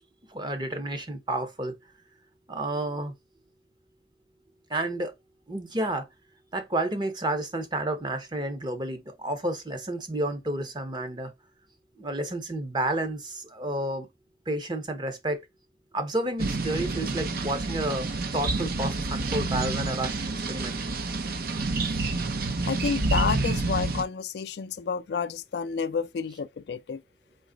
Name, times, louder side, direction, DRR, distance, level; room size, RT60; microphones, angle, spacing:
voice 1, 0.3-1.7 2.5-3.1 4.7-5.1 5.5-6.1 6.5-11.3 12.0-14.1 14.5-15.4 15.9-18.1 18.3-20.2 20.5-20.8 21.9-22.0, right 1 dB, 25° right, 0.8 m, -30 dB
sound 1, 16.4-24.0, right 3 dB, 55° right, 0.6 m, -28 dB
voice 2, 22.7-27.0, left 6 dB, 65° left, 0.4 m, -30 dB
3.9 x 3.1 x 3.8 m
head